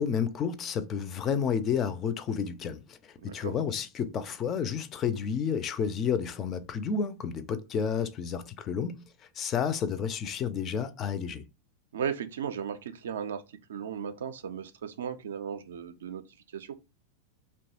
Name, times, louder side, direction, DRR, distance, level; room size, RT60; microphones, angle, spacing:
voice 1, 0.0-3.0 3.2-9.0 9.4-11.4, left 7 dB, 30° left, 0.3 m, -30 dB
voice 2, 11.9-13.4 13.7-16.2 16.5-16.7, right 8 dB, 65° right, 0.3 m, -35 dB
2.8 x 2.2 x 2.7 m
figure-of-eight pair, 90°, 0 cm